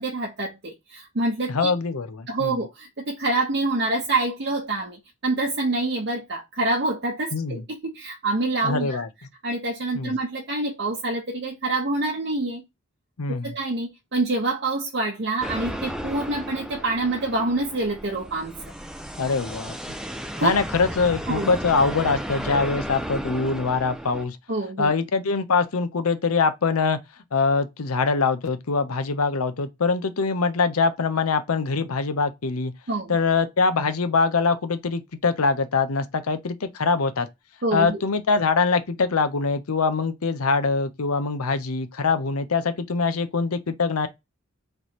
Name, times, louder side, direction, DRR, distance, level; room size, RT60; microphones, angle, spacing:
voice 1, 0.0-1.7 2.3-9.0 9.4-12.6 13.3-18.6 20.4-20.5 21.3-21.5 24.5-24.9 32.9-33.2 37.6-38.0, right 2 dB, 50° right, 0.8 m, -26 dB
voice 2, 1.5-2.6 7.3-7.6 8.6-9.1 9.9-10.1 13.2-13.6 19.2-19.7 20.4-24.4 24.8-27.0 27.3-32.7 33.1-37.3 37.7-44.1, left 4 dB, 85° left, 0.7 m, -23 dB
sound 1, 15.4-24.2, equal, 5° right, 0.3 m, -34 dB
3.3 x 3.1 x 4.1 m
head